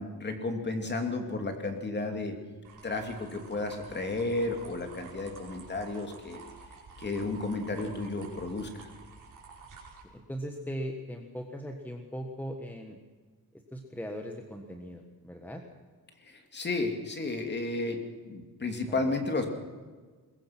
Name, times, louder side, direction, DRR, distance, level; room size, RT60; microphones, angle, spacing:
voice 1, 0.0-2.3 2.8-6.4 7.0-8.9 16.2-18.0 18.2-19.5, left 2 dB, 25° left, 5 dB, 2.7 m, -32 dB
sound 1, 2.6-10.0, right 4 dB, 50° right, 5.2 m, -50 dB
voice 2, 10.1-13.0 13.5-15.6 18.9-19.1, equal, 5° left, 3 dB, 1.4 m, -39 dB
22.0 x 21.5 x 6.0 m, 1.4 s
wide cardioid pair, 170°, 38 cm